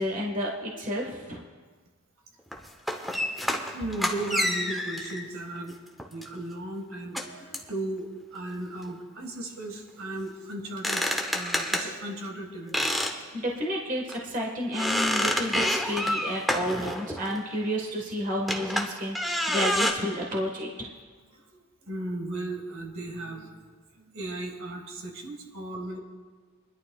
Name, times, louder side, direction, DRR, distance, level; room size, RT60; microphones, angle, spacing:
voice 1, 0.0-1.4 13.3-20.9, equal, 35° right, 0 dB, 1.5 m, -31 dB
sound 1, 2.5-5.2 6.0-6.2 7.1-7.2 7.5-7.7 10.6-11.9 12.7-13.2 13.5-13.6 14.1-14.2 14.7-17.4 18.4-19.9, left 1 dB, ahead, 0.8 m, -28 dB
voice 2, 3.7-5.7 6.1-13.0 21.5-23.5 24.0-26.0, right 2 dB, 70° right, 1 dB, 1.8 m, -36 dB
25.5 x 11.0 x 2.4 m, 1.5 s
head